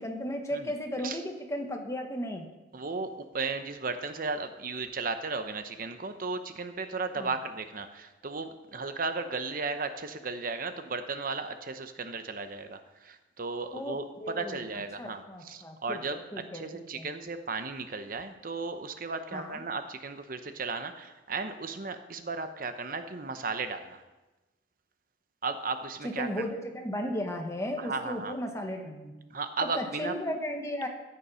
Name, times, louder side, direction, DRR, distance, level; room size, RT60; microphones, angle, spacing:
voice 1, 0.0-2.5 7.2-7.3 13.7-14.6 15.0-17.1 19.3-19.6 26.0-29.1 29.7-30.9, equal, 15° left, 3 dB, 1.5 m, -35 dB
voice 2, 2.7-24.0 25.4-26.5 27.8-28.3 29.3-30.2, right 4 dB, 50° right, 8 dB, 0.8 m, -35 dB
14.0 x 9.8 x 5.6 m, 1.1 s
head